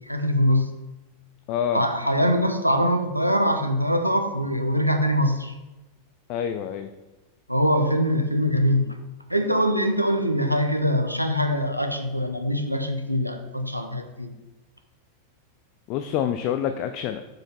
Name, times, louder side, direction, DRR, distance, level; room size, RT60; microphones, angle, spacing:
voice 1, 0.1-0.7 1.7-5.5 7.5-8.9 9.3-14.3, equal, 90° right, 5 dB, 0.7 m, -23 dB
voice 2, 1.5-1.8 6.3-6.9 15.9-17.2, left 9 dB, 40° left, 8 dB, 0.4 m, -27 dB
6.6 x 4.8 x 4.0 m, 1.1 s
figure-of-eight pair, 90°, 0 cm